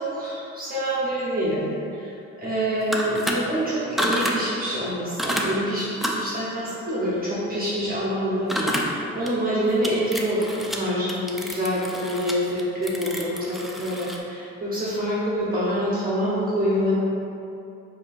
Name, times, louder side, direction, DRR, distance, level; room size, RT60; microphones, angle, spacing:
voice 1, 0.0-1.7 1.9-2.1 2.4-5.9 6.1-16.9, equal, 30° right, -8 dB, 0.9 m, -26 dB
sound 1, 2.8-3.3 4.0-4.4 5.2-5.5 6.0-6.3 8.5-8.9 9.3-9.4 9.8-10.8 11.1-14.2, equal, ahead, 0.3 m, -28 dB
5.8 x 2.7 x 2.5 m, 2.6 s
cardioid pair, 90°, 30 cm